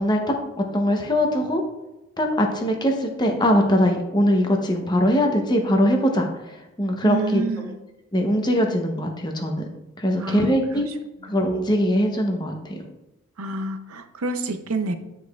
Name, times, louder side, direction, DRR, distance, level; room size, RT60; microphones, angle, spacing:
voice 1, 0.0-1.6 2.2-7.7 8.1-9.6 10.0-10.9 11.2-12.7, equal, 20° left, 3 dB, 0.8 m, -22 dB
voice 2, 7.0-7.8 10.2-10.8 13.4-14.9, right 3 dB, 75° right, 8 dB, 0.6 m, -28 dB
9.9 x 4.8 x 2.3 m, 0.96 s
head